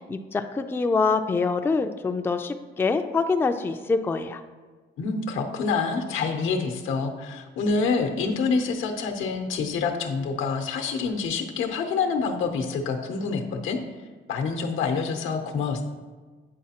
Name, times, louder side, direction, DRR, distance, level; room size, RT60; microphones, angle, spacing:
voice 1, 0.0-4.4, left 4 dB, 10° left, 7 dB, 0.3 m, -25 dB
voice 2, 5.0-13.8 14.3-15.8, left 4 dB, 85° left, 5 dB, 0.7 m, -27 dB
8.5 x 3.9 x 2.9 m, 1.4 s
cardioid pair, 90°, 20 cm